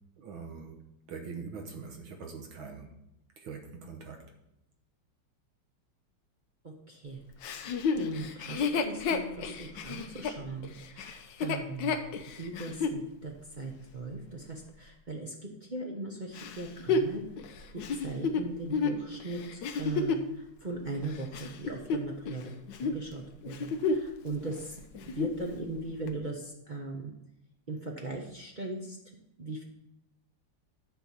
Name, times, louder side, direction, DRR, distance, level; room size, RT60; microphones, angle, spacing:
voice 1, 0.2-3.0 3.4-4.3, right 5 dB, 75° right, 4 dB, 1.8 m, -43 dB
voice 2, 6.6-7.2 7.6-7.7 7.9-12.0 12.4-15.3 15.6-17.2 18.0-22.5 22.8-24.8 25.1-27.2 27.7-29.0 29.4-29.6, right 2 dB, 40° right, 0 dB, 0.6 m, -39 dB
Chuckle chortle, 7.4-13.0 13.6-13.7 16.4-20.3 20.9-22.4 22.7-23.0 23.4-24.2 24.5-24.6 24.9-25.4 26.1-26.2, left 4 dB, 65° left, 1.3 m, -31 dB
10.0 x 4.6 x 7.0 m, 0.85 s
omnidirectional pair, 2.3 m